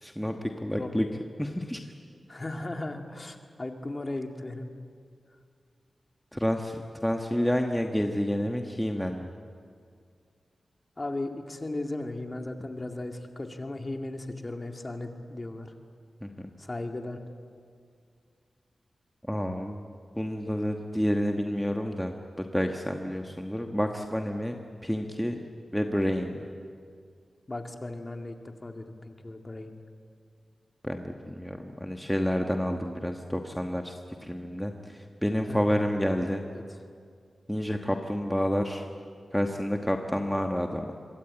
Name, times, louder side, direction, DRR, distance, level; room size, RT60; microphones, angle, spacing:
voice 1, 0.0-1.1 1.4-1.8 6.3-9.3 16.2-16.5 19.3-19.8 20.2-24.5 24.8-25.4 25.7-26.5 30.8-36.4 37.5-38.8 39.3-40.9, equal, 5° left, 3 dB, 1.3 m, -29 dB
voice 2, 0.7-1.1 2.3-4.7 11.0-15.7 16.6-17.2 27.5-29.8 35.5-35.7 36.5-36.8, left 2 dB, 25° left, 4 dB, 2.2 m, -36 dB
26.0 x 23.0 x 8.9 m, 2.2 s
wide cardioid pair, 125°, 0 cm